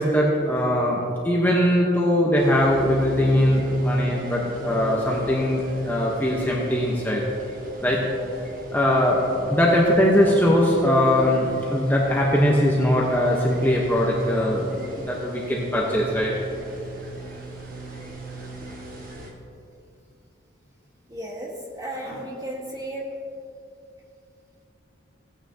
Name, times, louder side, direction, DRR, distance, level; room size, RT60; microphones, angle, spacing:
voice 1, 0.0-7.2 7.8-8.0 8.7-9.2 9.5-14.7 15.0-16.3, equal, 10° left, -4 dB, 0.9 m, -21 dB
sound 1, 2.3-19.3, equal, 45° right, 1.5 m, -32 dB
voice 2, 21.1-23.0, right 1 dB, 20° right, -2 dB, 1.4 m, -34 dB
16.0 x 9.0 x 2.8 m, 2.7 s
head